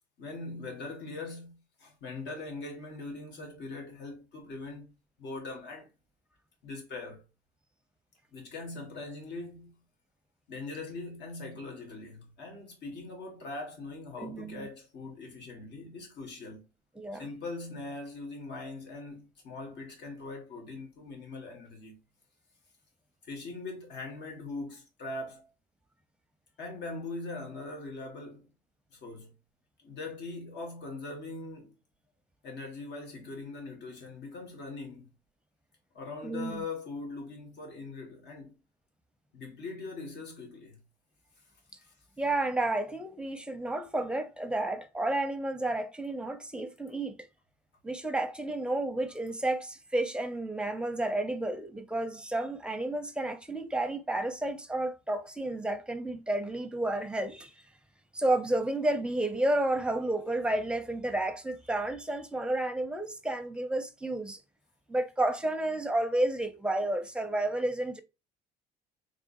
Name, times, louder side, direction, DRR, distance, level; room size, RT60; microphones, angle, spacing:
voice 1, 0.2-4.9 5.2-5.9 6.6-7.2 8.3-9.7 10.5-16.6 17.1-22.0 23.2-25.5 26.6-28.5 28.9-29.3 29.8-31.7 32.4-35.1 35.9-38.6 39.3-40.8 41.8-41.9, left 3 dB, 60° left, 1.9 m, -41 dB
voice 2, 14.2-14.7 17.0-17.3 36.2-36.6 42.2-47.2 47.8-57.5 58.1-64.4 64.9-68.0, right 1 dB, 5° right, 0.7 m, -31 dB
3.6 x 3.4 x 2.6 m
supercardioid pair, 85°, 20 cm